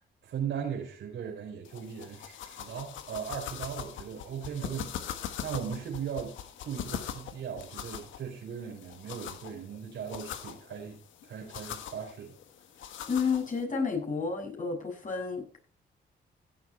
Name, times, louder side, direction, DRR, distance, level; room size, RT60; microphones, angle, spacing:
voice 1, 0.0-6.4 6.6-12.4, right 7 dB, 75° right, -1 dB, 3.9 m, -38 dB
sound 1, 1.7-13.6, left 10 dB, 85° left, 1.4 m, -42 dB
voice 2, 13.1-15.6, left 5 dB, 40° left, 2 dB, 6.7 m, -31 dB
16.0 x 7.9 x 4.3 m, 0.38 s
supercardioid pair, 65°, 20 cm